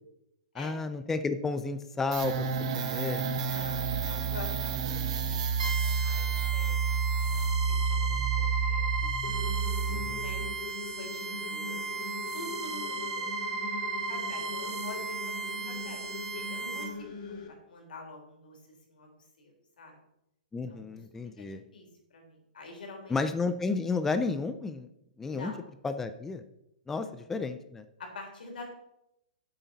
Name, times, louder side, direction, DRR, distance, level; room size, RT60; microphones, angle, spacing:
voice 1, 0.5-3.2 9.9-10.2 20.5-21.6 23.1-24.9 25.2-25.5 25.8-26.4 26.9-27.8, left 4 dB, 5° left, 10 dB, 0.4 m, -32 dB
sound 1, 2.1-10.5, right 5 dB, 40° right, 1.3 m, -30 dB
voice 2, 3.5-5.4 6.0-9.1 10.2-11.9 12.3-13.3 13.9-16.0 16.3-18.6 18.9-19.1 19.4-20.0 20.7-20.8 21.1-23.2 25.3-25.6 27.0-27.1 28.0-28.6, left 2 dB, 85° left, 2 dB, 3.6 m, -46 dB
sound 2, 5.6-16.8, right 4 dB, 65° right, 3.5 m, -35 dB
sound 3, 9.2-17.5, left 4 dB, 60° left, 2.3 m, -41 dB
10.5 x 7.9 x 4.1 m, 0.83 s
hypercardioid pair, 165°, 5 cm